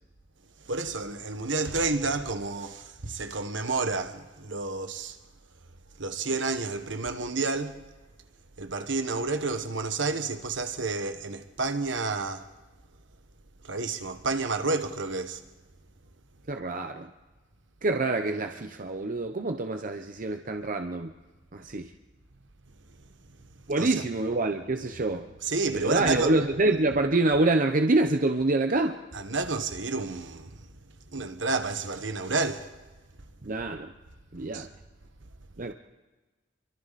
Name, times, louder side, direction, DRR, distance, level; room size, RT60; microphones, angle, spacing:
voice 1, 0.6-5.2 6.0-7.8 8.6-12.5 13.6-15.4 23.8-23.9 25.4-26.3 29.1-30.7 31.1-32.7 34.5-34.7, right 3 dB, 70° right, 1.5 m, -30 dB
voice 2, 16.5-17.1 17.8-21.1 21.5-21.9 23.7-25.3 25.7-29.0 33.4-33.9 34.3-34.7 35.6-35.7, right 2 dB, 45° right, 0.9 m, -26 dB
28.5 x 23.5 x 4.2 m
head